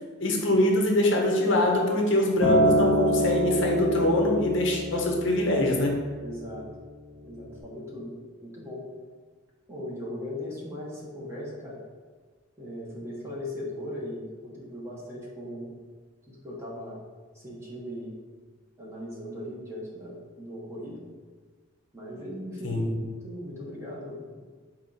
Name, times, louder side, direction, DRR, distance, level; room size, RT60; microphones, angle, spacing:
voice 1, 0.2-6.0 22.6-23.0, left 1 dB, 55° left, 1 dB, 0.6 m, -24 dB
Acoustic guitar, 2.4-6.7 7.5-7.6, equal, 40° right, 0.9 m, -26 dB
voice 2, 6.2-6.7 7.2-8.1 8.4-8.8 9.7-11.8 12.6-15.7 16.3-17.0 17.3-18.1 18.8-21.0 21.9-22.9 23.2-24.4, left 1 dB, 10° right, -6 dB, 0.9 m, -38 dB
4.2 x 2.8 x 3.8 m, 1.5 s
head